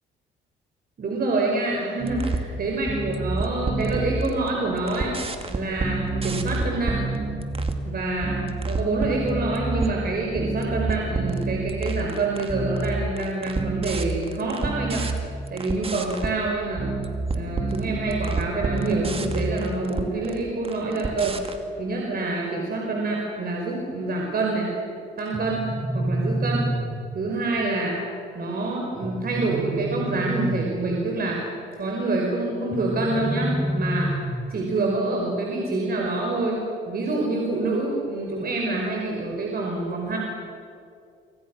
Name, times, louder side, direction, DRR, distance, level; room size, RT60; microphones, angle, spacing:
voice 1, 1.0-7.0 7.9-15.1 15.5-17.0 17.3-21.4 21.8-24.7 25.2-26.7 27.2-28.0 28.3-31.4 31.8-34.1 34.5-40.2, right 2 dB, 50° right, -1 dB, 5.1 m, -27 dB
sound 1, 2.0-2.5 2.9-4.5 4.8-7.8 8.2-10.0 10.3-16.3 16.8-20.4 20.6-21.5, right 3 dB, 30° right, 2.5 m, -28 dB
sound 2, 25.3-27.3 29.0-31.1 32.7-34.7, right 1 dB, 15° right, 1.7 m, -28 dB
27.0 x 25.0 x 6.4 m, 2.4 s
cardioid pair, 90°, 20 cm